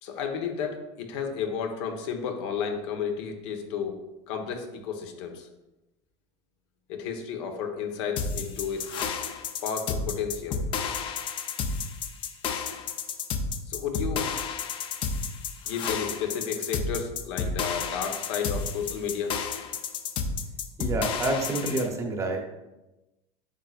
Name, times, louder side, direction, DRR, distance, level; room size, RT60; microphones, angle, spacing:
voice 1, 0.0-4.0 4.3-5.5 6.9-9.0 9.6-10.6 13.7-14.3 15.6-19.4, left 6 dB, 75° left, 4 dB, 1.3 m, -32 dB
sound 1, 8.2-21.9, left 5 dB, 35° left, 0.6 m, -31 dB
voice 2, 20.8-22.4, right 2 dB, 20° right, 3 dB, 0.9 m, -28 dB
9.0 x 6.7 x 2.5 m, 1.0 s
cardioid pair, 160°, 14 cm